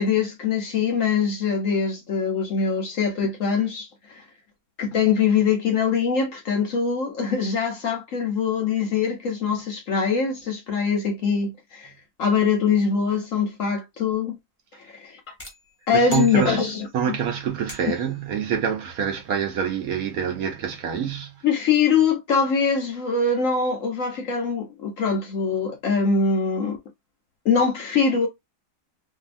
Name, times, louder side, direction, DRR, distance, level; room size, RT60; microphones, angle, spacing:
voice 1, 0.0-4.2 4.8-11.9 12.2-14.4 14.9-15.1 15.9-16.9 21.4-26.8 27.4-28.3, left 5 dB, 65° left, 0.9 m, -23 dB
sound 1, 15.4-17.0 17.7-18.2, left 1 dB, 20° left, 0.3 m, -40 dB
voice 2, 15.9-16.6 16.9-21.4, right 8 dB, 65° right, 1.0 m, -26 dB
2.7 x 2.5 x 2.4 m
omnidirectional pair, 1.9 m